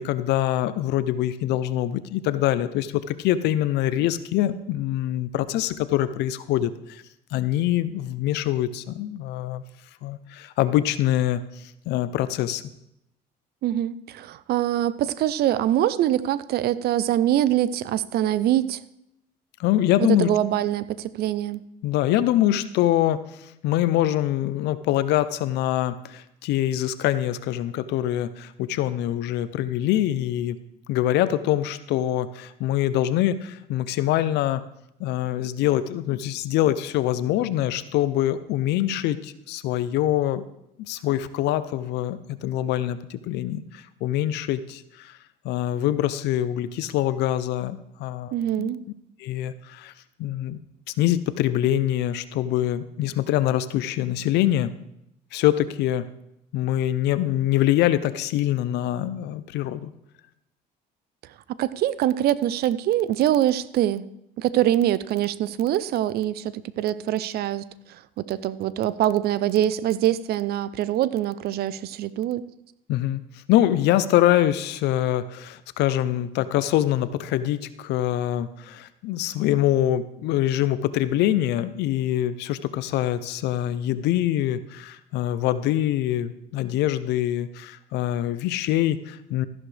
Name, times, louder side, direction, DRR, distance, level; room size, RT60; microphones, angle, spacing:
voice 1, 0.0-7.0 7.3-9.6 10.0-12.6 19.6-20.3 21.8-30.6 30.9-34.6 35.0-40.4 40.8-45.2 45.4-48.7 49.2-49.9 50.2-50.6 51.0-54.7 55.3-56.1 56.5-59.9 72.9-73.2 73.5-89.5, left 13 dB, 85° left, 14 dB, 0.7 m, -24 dB
voice 2, 13.6-18.8 20.0-21.6 48.3-48.8 61.6-64.0 64.4-67.7 68.2-72.5, right 12 dB, 70° right, 17 dB, 0.5 m, -24 dB
14.0 x 11.0 x 3.4 m, 0.81 s
cardioid pair, 110°, 17 cm